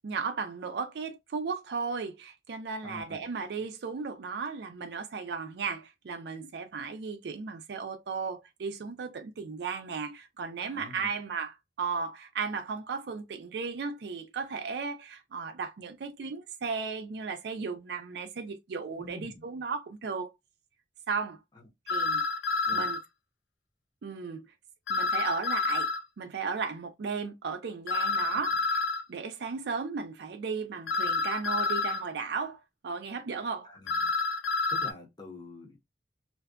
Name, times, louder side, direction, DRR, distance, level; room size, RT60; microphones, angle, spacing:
voice 1, 0.0-20.3 21.1-21.4 21.9-22.2 22.7-23.0 24.0-24.5 24.9-25.9 26.2-28.8 29.1-32.6 32.8-33.7, right 5 dB, 70° right, 0.4 m, -35 dB
voice 2, 2.8-3.3 10.6-11.1 19.0-19.5 21.5-21.6 22.7-22.9 33.6-34.1 34.7-35.8, left 2 dB, 25° left, 0.8 m, -46 dB
sound 1, 21.9-23.0 24.9-26.0 27.9-29.0 30.9-32.0 33.9-34.9, left 3 dB, 80° left, 0.4 m, -29 dB
2.6 x 2.3 x 2.2 m
head